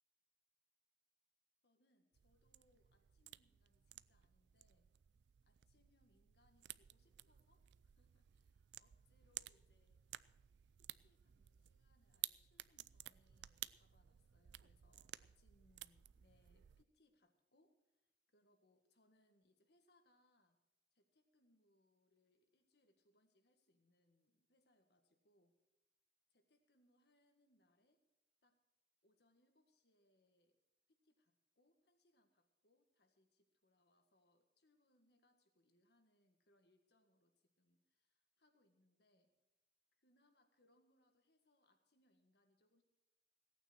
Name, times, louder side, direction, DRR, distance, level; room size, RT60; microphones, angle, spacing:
voice 1, 1.6-4.9 5.5-10.1 10.8-20.6 20.9-25.6 26.3-28.0 28.4-28.6 29.0-30.6 30.9-39.4 40.0-42.8, left 1 dB, 60° left, 6 dB, 1.7 m, -78 dB
sound 1, 2.1-16.8, right 15 dB, 65° right, 0.4 m, -55 dB
17.0 x 9.1 x 6.3 m, 0.97 s
head